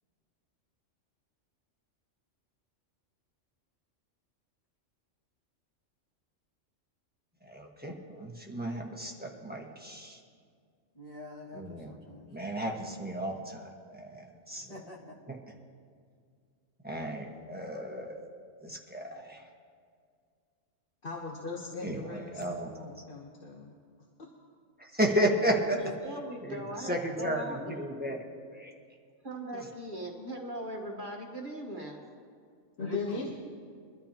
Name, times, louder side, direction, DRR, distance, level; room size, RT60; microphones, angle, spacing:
voice 1, 7.4-10.2 11.5-11.9 12.3-14.7 15.3-15.4 16.8-18.2 18.6-19.4 21.8-22.8 24.8-25.8 26.4-28.2 28.5-28.7 29.5-29.6, equal, 10° right, -1 dB, 1.3 m, -33 dB
voice 2, 10.9-12.3 14.7-15.2 25.8-25.9 32.8-33.3, left 2 dB, 30° left, -5 dB, 2.2 m, -44 dB
voice 3, 21.0-23.7 32.8-33.3, left 4 dB, 45° left, -2 dB, 1.3 m, -38 dB
voice 4, 25.7-27.8 29.2-32.0, right 1 dB, 40° right, -1 dB, 1.5 m, -39 dB
22.5 x 12.5 x 2.9 m, 2.1 s
omnidirectional pair, 1.3 m